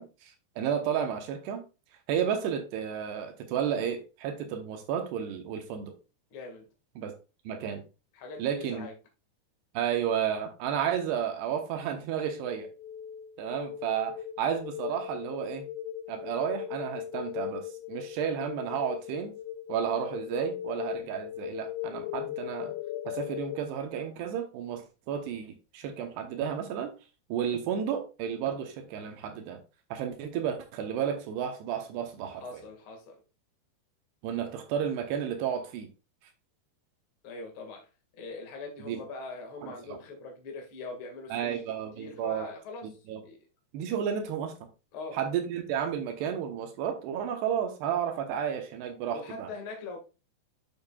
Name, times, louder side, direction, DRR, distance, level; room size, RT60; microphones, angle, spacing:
voice 1, 0.0-1.7 2.1-6.0 7.0-7.1 7.5-7.8 8.4-8.9 9.7-12.7 13.4-15.7 16.1-19.3 19.7-22.7 23.1-26.9 27.3-29.6 29.9-32.6 34.2-35.9 38.9-39.0 39.6-39.7 41.3-42.5 43.1-43.2 43.7-44.5 45.1-49.5, right 8 dB, 75° right, 6 dB, 3.1 m, -32 dB
voice 2, 6.3-6.7 8.1-8.9 32.4-33.2 37.2-41.6 42.0-43.5 44.9-45.2 49.1-50.0, left 3 dB, 40° left, 2 dB, 2.0 m, -42 dB
sound 1, 12.4-23.6, left 12 dB, 85° left, 2.7 m, -38 dB
8.7 x 7.2 x 2.4 m, 0.30 s
omnidirectional pair, 4.8 m